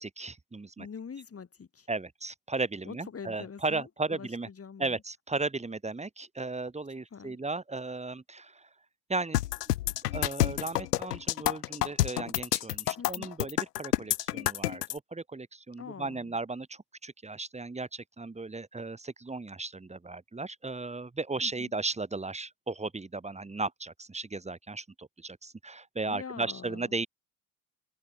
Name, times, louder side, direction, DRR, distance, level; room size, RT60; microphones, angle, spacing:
voice 1, 0.0-0.9 1.9-4.5 4.8-8.7 9.1-9.4 10.1-27.1, right 3 dB, 15° right, 3.4 m, -36 dB
voice 2, 0.8-1.9 2.8-5.0 7.1-7.4 13.0-13.3 15.8-16.3 21.4-21.7 26.1-27.0, left 6 dB, 30° left, 7.6 m, -44 dB
sound 1, 9.3-14.9, left 15 dB, 75° left, 1.1 m, -28 dB
figure-of-eight pair, 65°, 48 cm